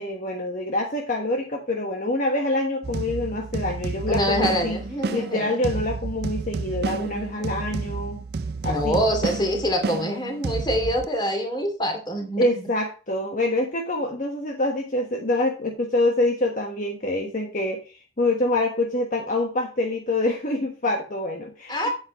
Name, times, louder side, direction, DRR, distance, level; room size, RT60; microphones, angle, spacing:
voice 1, 0.0-4.8 5.1-8.2 8.6-9.0 12.4-17.8 18.2-21.9, left 2 dB, 45° left, 1 dB, 1.4 m, -26 dB
sound 1, 2.8-11.1, right 4 dB, 60° right, 0.5 m, -30 dB
voice 2, 4.1-5.5 8.7-12.7 21.7-21.9, equal, 25° left, 3 dB, 2.7 m, -25 dB
8.7 x 8.5 x 3.1 m, 0.35 s
head